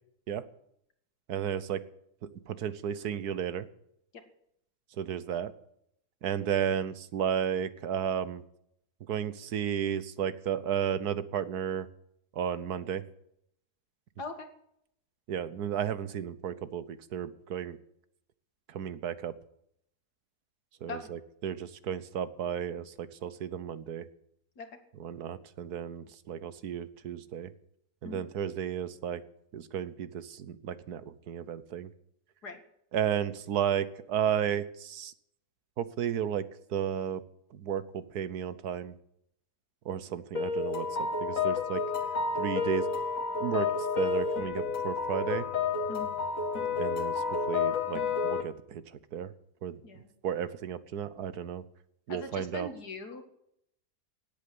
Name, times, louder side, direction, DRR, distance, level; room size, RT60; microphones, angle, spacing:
voice 1, 1.3-1.8 2.5-3.7 5.0-5.5 6.2-8.4 9.1-11.9 12.4-13.0 15.3-16.8 17.1-17.8 18.7-19.3 20.8-24.1 24.9-27.5 28.0-29.2 29.5-31.9 32.9-35.1 35.8-36.4 36.7-37.2 37.5-38.9 39.8-41.8 42.4-42.9 43.4-43.7 44.0-45.5 46.8-47.1 47.5-48.8 49.1-49.3 49.6-49.8 50.2-51.6 52.1-52.7, right 9 dB, 75° right, 15 dB, 1.5 m, -33 dB
sound 1, 40.3-48.4, left 5 dB, 55° left, 2.1 m, -30 dB
voice 2, 52.1-53.2, left 3 dB, 80° left, 6 dB, 2.7 m, -40 dB
17.5 x 8.7 x 7.9 m, 0.73 s
omnidirectional pair, 1.7 m